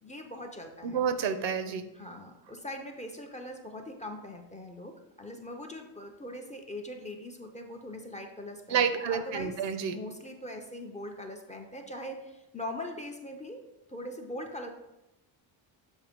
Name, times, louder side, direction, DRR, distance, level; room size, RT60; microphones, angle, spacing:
voice 1, 0.0-1.1 1.9-9.6 9.9-13.6 13.9-14.7, left 1 dB, 15° left, 2 dB, 0.5 m, -41 dB
voice 2, 0.8-1.9 8.7-9.9, right 7 dB, 60° right, 10 dB, 0.7 m, -29 dB
7.4 x 2.8 x 5.1 m, 0.93 s
cardioid pair, 115°, 49 cm